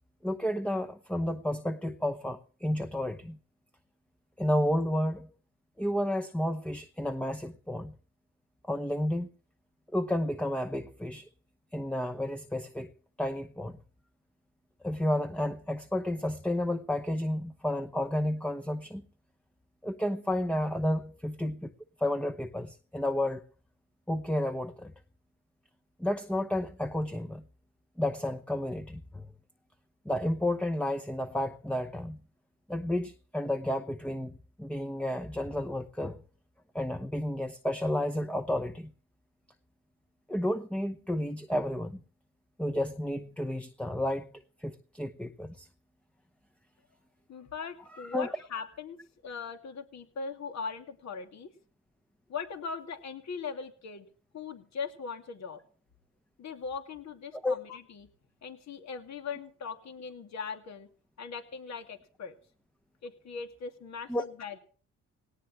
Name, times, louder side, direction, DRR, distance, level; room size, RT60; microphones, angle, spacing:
voice 1, 0.2-3.4 4.4-5.3 5.8-7.9 8.6-9.3 9.9-11.3 11.7-12.9 13.2-13.8 14.8-19.0 19.8-21.7 22.0-23.4 24.1-24.9 26.0-27.4 28.0-29.3 30.0-32.2 32.7-36.2 36.7-38.9 40.3-42.0 42.6-44.3 44.6-45.7 48.0-48.3 57.3-57.5 64.1-64.2, left 1 dB, 5° left, 0.9 m, -31 dB
voice 2, 47.3-51.5 52.3-54.1 54.3-55.6 56.4-58.1 58.4-60.9 61.2-62.3 63.0-64.6, left 5 dB, 65° left, 2.7 m, -40 dB
18.5 x 18.5 x 3.2 m
cardioid pair, 90°, 30 cm